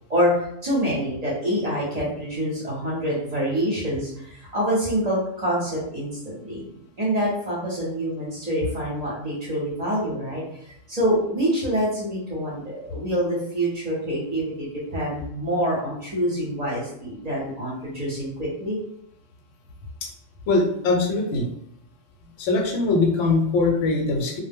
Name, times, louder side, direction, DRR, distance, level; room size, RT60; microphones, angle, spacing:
voice 1, 0.6-6.6 7.0-10.4 10.9-18.8, equal, 40° right, -6 dB, 0.7 m, -26 dB
voice 2, 20.5-21.5 22.4-24.4, left 3 dB, 80° left, 1 dB, 0.9 m, -22 dB
2.1 x 2.0 x 3.4 m, 0.73 s
omnidirectional pair, 1.3 m